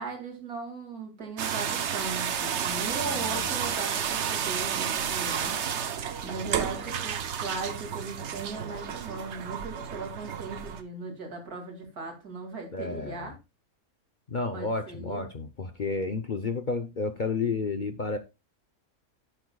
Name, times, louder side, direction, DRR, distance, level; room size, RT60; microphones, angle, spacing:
voice 1, 0.0-5.6 6.2-13.4 14.5-15.2, right 4 dB, 80° right, 2.9 m, -38 dB
sound 1, 1.4-10.8, right 8 dB, 55° right, 1.0 m, -31 dB
voice 2, 3.0-3.7 12.7-13.3 14.3-18.2, left 3 dB, 45° left, 0.7 m, -31 dB
11.0 x 8.8 x 2.3 m
omnidirectional pair, 1.5 m